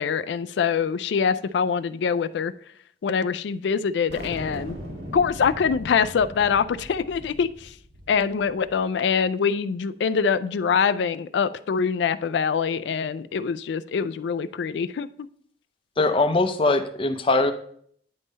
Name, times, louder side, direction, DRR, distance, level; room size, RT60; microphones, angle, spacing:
voice 1, 0.0-2.5 3.0-4.8 5.1-7.7 8.1-15.1, left 6 dB, 80° left, 14 dB, 0.3 m, -24 dB
sound 1, 4.1-8.8, equal, 80° right, 1.7 m, -39 dB
voice 2, 16.0-17.5, left 2 dB, 30° left, 8 dB, 0.5 m, -21 dB
9.6 x 3.7 x 3.9 m, 0.62 s
head